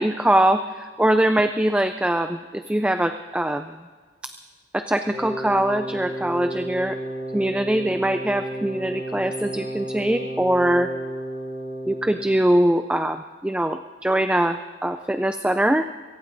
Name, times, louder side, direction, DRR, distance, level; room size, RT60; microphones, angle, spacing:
voice 1, 0.0-3.7 4.7-7.0 7.3-10.9 11.9-15.9, right 1 dB, 5° right, 8 dB, 0.3 m, -22 dB
Wind instrument woodwind instrument, 5.0-12.4, right 1 dB, 30° right, 4.8 m, -32 dB
23.0 x 17.5 x 2.6 m, 1.5 s
head